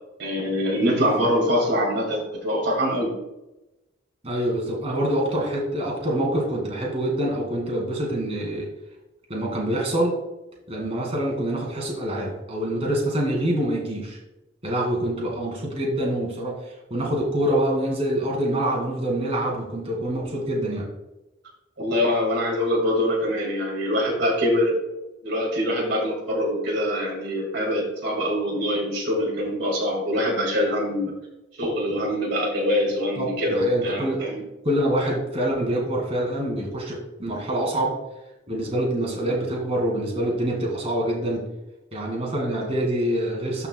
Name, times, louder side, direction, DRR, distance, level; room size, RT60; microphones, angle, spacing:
voice 1, 0.2-3.1 21.8-24.8 25.2-31.1 31.6-34.4 39.1-39.3, equal, 65° right, -1 dB, 2.3 m, -24 dB
voice 2, 0.9-1.6 4.2-8.7 9.3-10.1 10.7-14.2 14.6-20.9 31.9-32.0 33.2-34.2 34.6-37.9 38.5-41.4 41.9-43.7, right 1 dB, 35° right, -2 dB, 2.4 m, -26 dB
13.0 x 5.5 x 2.3 m, 0.96 s
head